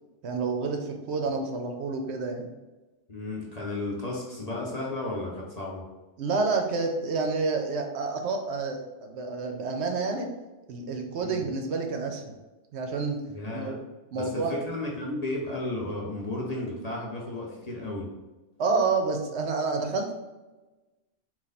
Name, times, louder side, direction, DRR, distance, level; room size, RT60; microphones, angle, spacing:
voice 1, 0.2-2.5 6.2-10.3 10.7-12.3 12.7-13.2 13.5-13.8 14.1-14.5 18.6-20.1, right 4 dB, 70° right, 3 dB, 0.8 m, -29 dB
voice 2, 3.1-5.8 11.2-11.5 13.3-13.8 14.1-18.1, left 2 dB, 40° left, -3 dB, 0.7 m, -33 dB
4.2 x 2.5 x 4.0 m, 1.1 s
omnidirectional pair, 1.2 m